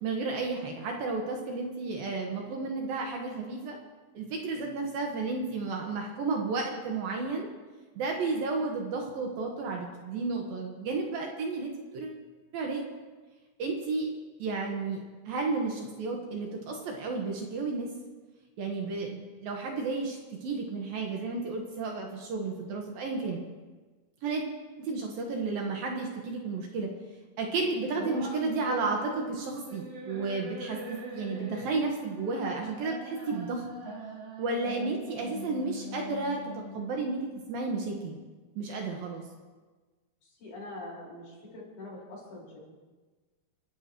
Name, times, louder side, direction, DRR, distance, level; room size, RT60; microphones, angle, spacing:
voice 1, 0.0-3.8 4.1-7.5 8.0-12.2 12.5-12.8 13.6-14.1 14.4-17.9 18.6-23.4 24.2-24.5 24.8-26.9 27.4-33.6 34.4-36.4 36.7-38.2 38.6-39.2, right 3 dB, 65° right, 1 dB, 2.9 m, -32 dB
sound 1, 27.9-36.9, right 1 dB, 45° right, 4.5 m, -42 dB
voice 2, 40.4-42.6, left 2 dB, 50° left, -4 dB, 5.9 m, -44 dB
30.0 x 12.5 x 3.1 m, 1.3 s
omnidirectional pair, 4.9 m